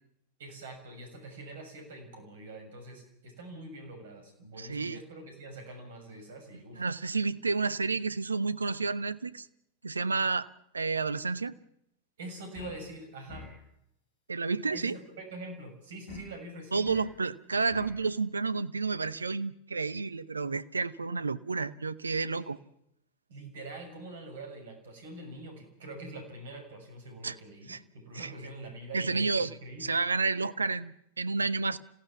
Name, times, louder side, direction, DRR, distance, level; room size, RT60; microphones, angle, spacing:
voice 1, 0.4-6.8 12.2-13.5 14.7-16.9 22.3-22.5 23.3-29.9, right 2 dB, 60° right, 5 dB, 6.6 m, -45 dB
voice 2, 4.6-5.0 6.8-9.5 9.8-10.5 10.7-11.5 14.3-15.0 16.7-22.6 27.2-27.4 27.7-27.8 28.1-28.3 28.9-31.8, right 4 dB, 75° right, 15 dB, 0.8 m, -30 dB
sound 1, 12.5-12.9 13.3-13.7 16.1-16.4 16.8-17.2 17.7-18.0, left 5 dB, 50° left, 5.8 m, -45 dB
26.5 x 16.5 x 7.2 m, 0.79 s
figure-of-eight pair, 90°, 0 cm